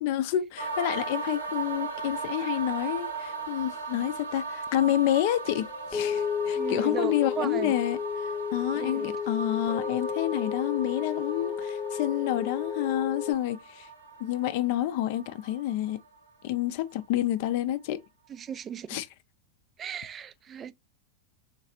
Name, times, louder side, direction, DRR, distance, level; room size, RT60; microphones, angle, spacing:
voice 1, 0.0-8.0 8.5-13.9 14.2-16.0 16.4-18.0 18.9-19.1, left 12 dB, 50° left, 0.4 m, -29 dB
sound 1, 0.6-16.6 16.8-16.9, right 4 dB, 75° right, 1.1 m, -38 dB
sound 2, 5.4-13.3, left 7 dB, 10° left, 0.7 m, -32 dB
voice 2, 6.5-7.7 8.7-9.1 18.3-19.0 19.8-20.7, right 8 dB, 25° right, 0.3 m, -36 dB
3.9 x 3.2 x 2.5 m
figure-of-eight pair, 90°, 0 cm